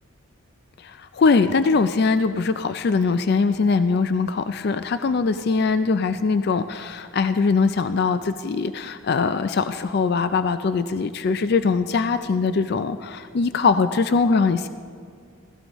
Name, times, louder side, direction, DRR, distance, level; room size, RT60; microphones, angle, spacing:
voice 1, 0.8-14.7, left 4 dB, 50° left, 11 dB, 0.4 m, -22 dB
15.5 x 15.5 x 3.1 m, 2.2 s
head